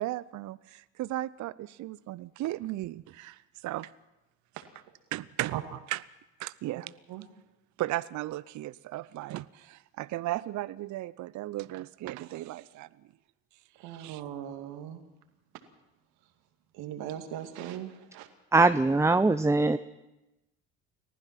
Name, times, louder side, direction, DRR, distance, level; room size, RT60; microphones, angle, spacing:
voice 1, 0.0-3.9 5.1-6.0 6.4-6.9 7.8-12.9 13.8-14.2, right 16 dB, 45° right, 17 dB, 0.6 m, -36 dB
voice 2, 13.8-15.0 16.7-18.3, right 10 dB, 60° right, 6 dB, 2.3 m, -39 dB
voice 3, 18.5-19.8, right 3 dB, 5° right, 11 dB, 0.6 m, -22 dB
29.5 x 15.0 x 6.0 m, 0.97 s
hypercardioid pair, 55°, 41 cm